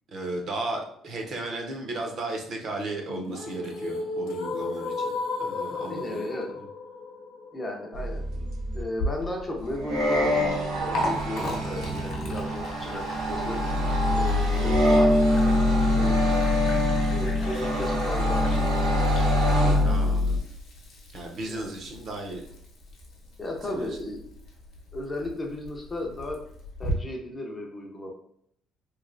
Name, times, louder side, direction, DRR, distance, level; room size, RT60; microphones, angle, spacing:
voice 1, 0.1-6.2 6.6-6.7 19.8-20.4 21.1-22.4 23.7-23.9, right 2 dB, 40° right, 1 dB, 0.5 m, -35 dB
sound 1, 3.1-9.1, left 3 dB, 80° left, 0.4 m, -34 dB
voice 2, 5.8-6.5 7.5-8.2 8.7-10.4 10.8-13.6 14.1-15.2 15.9-16.3 17.1-18.5 19.4-19.9 21.5-21.8 23.4-24.2 24.9-26.4 26.8-28.1, left 1 dB, 15° left, 1 dB, 0.4 m, -35 dB
sound 2, 7.9-8.8 9.6-20.4, left 1 dB, 85° right, 0.8 m, -24 dB
Liquid, 8.9-26.9, left 1 dB, 50° left, 0.8 m, -38 dB
3.1 x 2.6 x 2.5 m, 0.68 s
cardioid pair, 180°, 0 cm